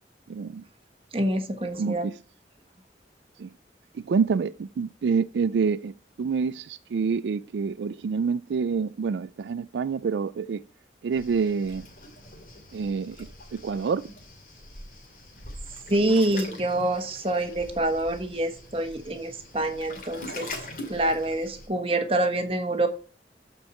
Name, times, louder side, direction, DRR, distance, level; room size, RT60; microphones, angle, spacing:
voice 1, 0.3-0.6 1.8-2.2 3.4-3.5 3.9-10.6 11.0-11.9 12.7-14.1, right 5 dB, 80° right, 0.4 m, -27 dB
voice 2, 1.1-2.1 15.9-20.5 20.9-22.9, right 1 dB, 30° right, 1.3 m, -26 dB
Waves surf, 11.1-21.7, left 1 dB, 50° left, 2.2 m, -43 dB
13.0 x 4.7 x 4.3 m
head